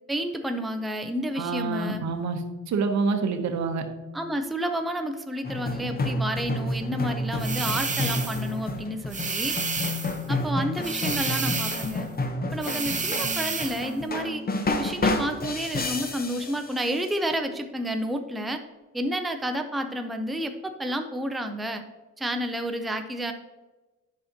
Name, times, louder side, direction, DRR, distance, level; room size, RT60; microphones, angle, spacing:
voice 1, 0.1-2.0 4.1-9.6 10.3-12.1 12.5-14.4 14.8-18.6 18.9-21.8 22.2-23.3, equal, ahead, 6 dB, 0.5 m, -30 dB
voice 2, 1.4-3.8, right 4 dB, 65° right, 7 dB, 0.9 m, -27 dB
sound 1, 5.4-17.1, left 2 dB, 30° left, 0.9 m, -30 dB
sound 2, 7.4-8.5 9.1-10.2 10.8-12.0 12.6-13.9, right 4 dB, 25° right, 0.8 m, -30 dB
8.4 x 5.7 x 2.8 m, 1.2 s
cardioid pair, 90°, 30 cm